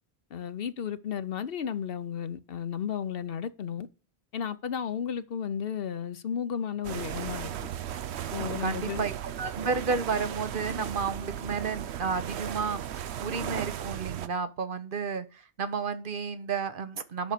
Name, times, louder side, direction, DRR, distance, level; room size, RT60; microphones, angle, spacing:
voice 1, 0.3-3.9 4.3-7.7 8.3-9.0, left 8 dB, 65° left, 0.9 m, -33 dB
sound 1, 6.8-14.3, right 10 dB, 85° right, 0.9 m, -36 dB
voice 2, 8.6-17.3, right 5 dB, 55° right, 1.0 m, -32 dB
9.3 x 6.3 x 6.7 m
omnidirectional pair, 1.1 m